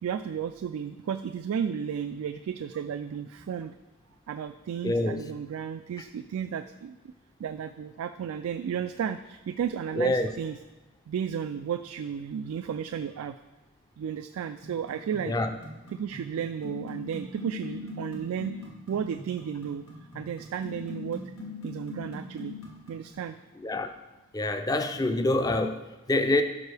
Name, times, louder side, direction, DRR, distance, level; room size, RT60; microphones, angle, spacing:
voice 1, 0.0-3.7 4.3-7.1 7.4-10.6 11.1-13.4 14.0-15.3 15.9-18.5 18.9-21.3 21.6-22.5 22.9-23.4, right 8 dB, 90° right, 10 dB, 0.3 m, -33 dB
voice 2, 4.8-5.2 10.0-10.3 15.3-15.5 23.6-23.9 24.3-26.4, left 2 dB, 15° left, 7 dB, 0.4 m, -26 dB
sound 1, 14.6-23.1, left 3 dB, 75° left, 1.7 m, -42 dB
12.5 x 4.5 x 3.4 m, 1.1 s
head